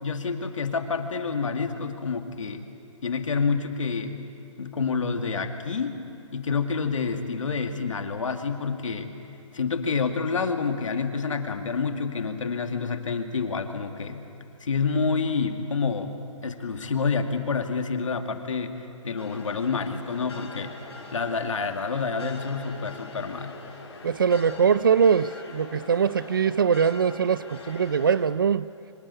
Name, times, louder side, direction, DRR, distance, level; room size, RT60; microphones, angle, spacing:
voice 1, 0.0-2.6 3.0-4.3 4.6-6.0 6.3-9.1 9.5-14.2 14.6-16.1 16.4-20.8 21.1-23.6, left 5 dB, 85° left, 2.2 m, -28 dB
sound 1, 19.2-28.3, left 3 dB, 55° left, 4.0 m, -43 dB
voice 2, 24.0-28.7, right 6 dB, 45° right, 0.4 m, -22 dB
24.5 x 16.5 x 10.0 m
hypercardioid pair, 180°, 16 cm